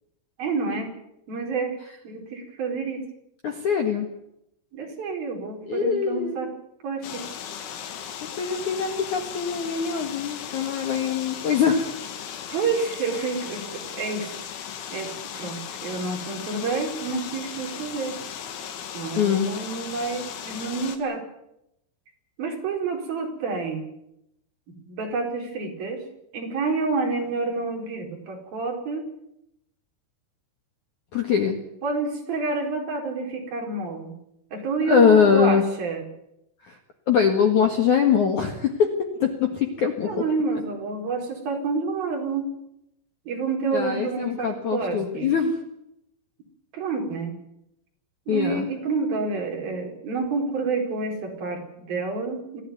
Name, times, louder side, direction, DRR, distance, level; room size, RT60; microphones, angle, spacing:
voice 1, 0.4-0.9 1.3-1.8 2.0-3.1 4.7-6.5 6.8-7.2 12.5-13.7 13.9-14.3 14.9-18.2 18.9-21.2 22.4-23.8 24.7-26.0 26.3-29.1 31.8-34.2 34.5-36.1 40.0-42.5 43.3-45.3 46.7-47.4 48.3-52.6, right 4 dB, 50° right, 1 dB, 6.0 m, -28 dB
voice 2, 3.4-4.1 5.7-6.4 8.4-11.9 19.2-19.5 31.1-31.6 34.9-35.6 36.6-36.8 37.1-38.9 39.2-40.2 43.7-45.5 48.3-48.7, left 6 dB, 55° left, 5 dB, 2.3 m, -22 dB
sound 1, 7.0-21.0, left 8 dB, 75° left, 4.3 m, -37 dB
25.0 x 16.0 x 9.5 m, 0.82 s
omnidirectional pair, 5.8 m